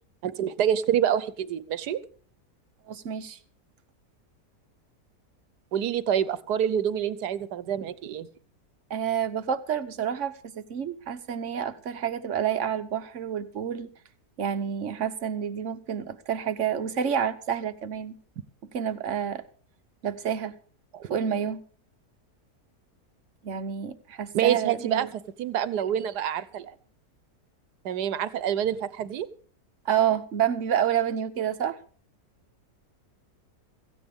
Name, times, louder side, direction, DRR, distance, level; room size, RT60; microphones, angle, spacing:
voice 1, 0.2-2.0 5.7-8.3 20.9-21.1 24.3-25.1 25.4-26.7 27.8-29.3, right 9 dB, 80° right, 1.4 m, -27 dB
voice 2, 2.9-3.4 8.9-13.9 14.4-18.2 18.7-19.4 20.0-20.5 21.1-21.6 23.4-25.1 29.8-31.8, right 8 dB, 50° right, 1.2 m, -29 dB
17.0 x 15.0 x 3.6 m
omnidirectional pair, 1.7 m